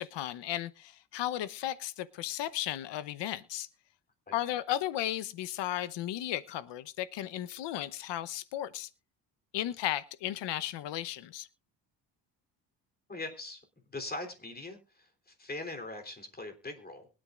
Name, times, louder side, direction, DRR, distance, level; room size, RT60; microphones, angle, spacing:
voice 1, 0.0-3.7 4.3-8.9 9.5-11.5, left 13 dB, 75° left, 1.0 m, -35 dB
voice 2, 13.1-13.6 13.9-17.1, left 2 dB, 20° left, 3.5 m, -41 dB
23.0 x 8.9 x 2.5 m
cardioid pair, 95°, 42 cm